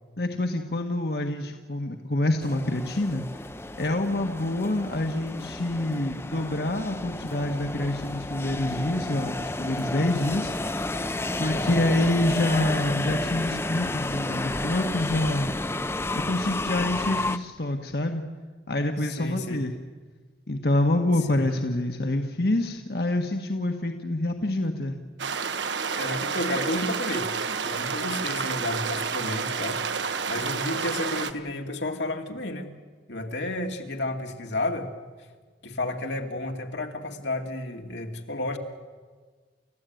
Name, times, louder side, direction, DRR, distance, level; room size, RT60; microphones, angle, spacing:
voice 1, 0.2-3.2 3.8-10.5 11.4-15.5 16.1-18.2 18.7-19.8 20.5-25.0, left 1 dB, 60° left, 4 dB, 1.5 m, -26 dB
sound 1, 2.4-17.4, left 2 dB, 15° left, 0.7 m, -31 dB
voice 2, 19.0-19.6 21.3-21.4 26.0-27.3 27.6-29.8 30.3-32.7 33.1-34.9 35.6-38.6, left 1 dB, 85° left, 3 dB, 2.6 m, -31 dB
sound 2, 25.2-31.3, right 5 dB, 90° right, 1.3 m, -29 dB
30.0 x 14.5 x 9.3 m, 1.5 s
head